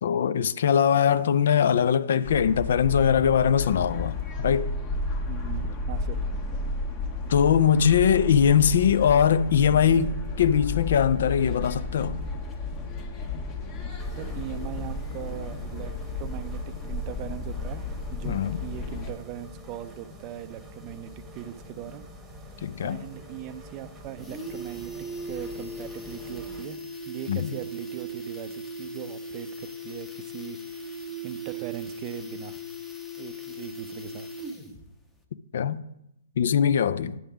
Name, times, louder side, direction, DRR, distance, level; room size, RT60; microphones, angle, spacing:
voice 1, 0.0-4.7 7.3-12.2 18.2-18.6 22.6-23.0 27.3-27.5 35.5-35.8 36.4-37.2, left 8 dB, 55° left, 0.3 m, -22 dB
sound 1, 2.2-19.1, left 3 dB, 30° left, 1.2 m, -32 dB
voice 2, 5.3-6.5 14.2-22.0 22.8-24.9 25.2-26.8 27.0-32.6 33.2-34.3, right 12 dB, 30° right, 0.4 m, -40 dB
sound 2, 14.0-26.6, equal, 10° right, 1.1 m, -46 dB
sound 3, 23.3-23.4 23.7-23.8 24.0-34.9 35.2-35.3, right 1 dB, 5° left, 0.8 m, -38 dB
9.2 x 3.5 x 5.9 m
figure-of-eight pair, 120°, 0 cm